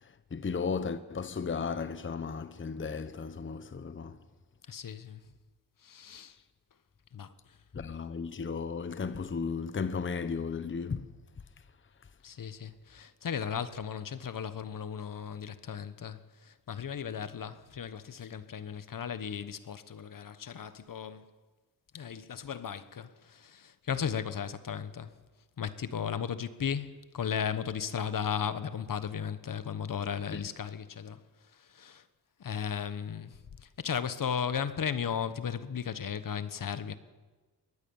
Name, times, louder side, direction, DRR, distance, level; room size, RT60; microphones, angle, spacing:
voice 1, 0.3-4.2 7.7-11.1 30.3-30.4, left 5 dB, 30° left, 0.9 m, -34 dB
voice 2, 4.7-5.2 5.8-6.4 7.1-7.6 12.2-21.3 21.9-25.1 25.6-32.0 32.4-36.9, left 7 dB, 55° left, 1.3 m, -36 dB
22.0 x 19.5 x 7.2 m
cardioid pair, 85°, 40 cm